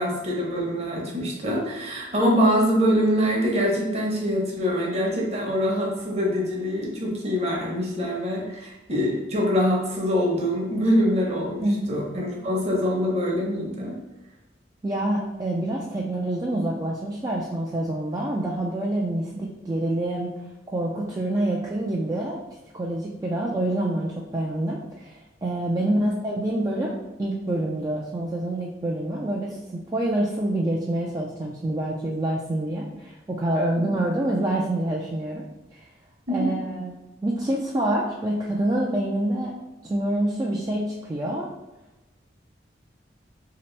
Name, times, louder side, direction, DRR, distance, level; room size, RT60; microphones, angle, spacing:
voice 1, 0.0-14.0 26.0-26.1 36.3-36.5, equal, 35° right, -2 dB, 0.8 m, -24 dB
voice 2, 14.8-20.3 20.7-22.4 22.7-26.9 27.2-35.4 35.7-35.8 36.3-36.9 37.2-39.5 39.9-41.5, right 1 dB, 20° right, -4 dB, 0.3 m, -26 dB
2.9 x 2.8 x 3.2 m, 1.0 s
head